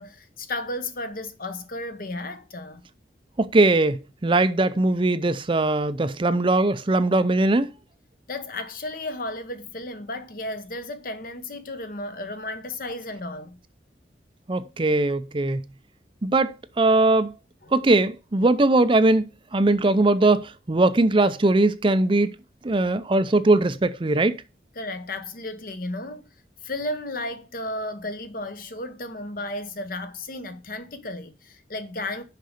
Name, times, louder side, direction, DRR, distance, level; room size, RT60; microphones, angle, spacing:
voice 1, 0.0-2.9 8.3-13.6 17.6-17.7 24.8-26.2 26.6-32.2, left 2 dB, 50° left, 1.0 m, -34 dB
voice 2, 3.4-7.7 14.5-15.6 16.2-17.3 17.7-22.3 22.6-24.4, right 2 dB, 30° right, 0.5 m, -20 dB
6.5 x 5.4 x 6.5 m
head